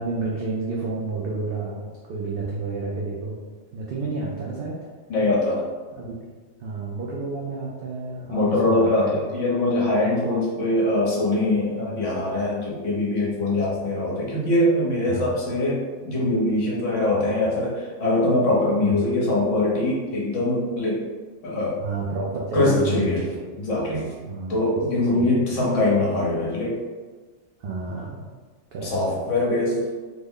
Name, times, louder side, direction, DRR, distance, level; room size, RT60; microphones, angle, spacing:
voice 1, 0.0-3.4 3.7-4.9 5.9-6.2 6.6-9.1 11.9-12.0 15.1-15.3 19.0-19.1 21.8-23.2 24.3-24.8 25.1-25.3 27.6-28.2 28.7-28.9, right 3 dB, 65° right, -4 dB, 0.6 m, -30 dB
voice 2, 5.1-5.6 8.3-21.0 21.4-21.8 22.5-23.2 23.6-24.1 24.5-26.8 28.8-29.9, left 2 dB, 65° left, -4 dB, 1.2 m, -23 dB
3.2 x 2.1 x 3.6 m, 1.4 s
omnidirectional pair, 1.4 m